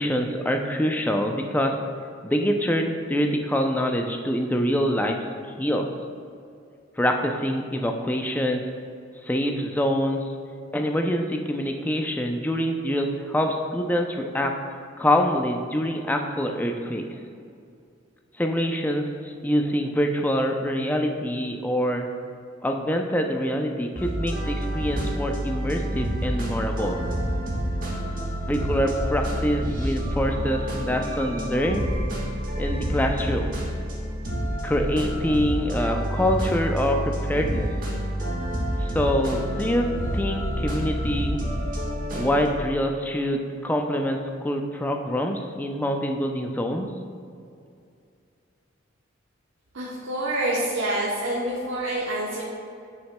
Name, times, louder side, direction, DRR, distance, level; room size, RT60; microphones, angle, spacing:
voice 1, 0.0-1.7 2.2-5.2 5.4-5.9 7.0-8.6 9.2-10.3 10.7-14.5 15.0-17.2 18.4-22.1 22.6-27.0 28.5-31.9 32.6-33.6 34.6-37.7 38.8-39.9 40.1-41.4 42.1-46.9, equal, 10° left, 3 dB, 0.4 m, -25 dB
sound 1, 24.0-42.5, equal, 45° right, 1.4 m, -28 dB
voice 2, 49.7-52.4, right 1 dB, 85° right, -5 dB, 0.9 m, -27 dB
7.6 x 6.1 x 2.2 m, 2.4 s
head